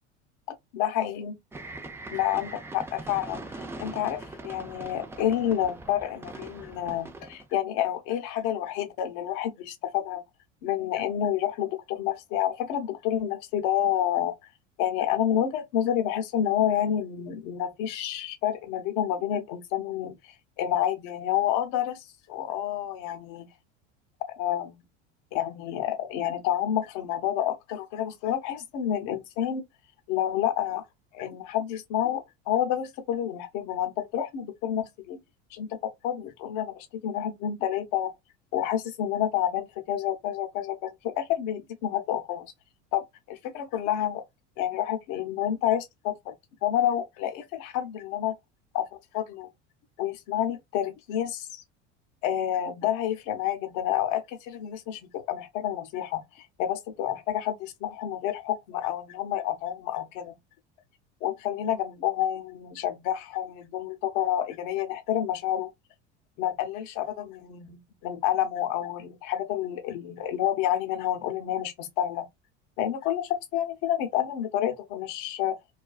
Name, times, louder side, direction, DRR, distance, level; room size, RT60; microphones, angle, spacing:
voice 1, 0.7-1.3 2.1-10.2 10.6-14.4 14.8-20.1 20.6-23.5 24.4-24.8 25.3-29.6 30.1-30.8 31.1-35.2 35.5-38.1 38.5-42.5 42.9-44.2 44.6-46.3 46.6-48.3 48.7-48.9 49.1-49.5 50.0-51.6 52.2-60.3 61.2-65.7 66.4-72.3 72.8-75.6, left 11 dB, 60° left, 0.7 m, -29 dB
sound 1, 1.5-7.5, right 2 dB, 10° right, 0.3 m, -41 dB
2.4 x 2.2 x 2.3 m
hypercardioid pair, 80°, 35 cm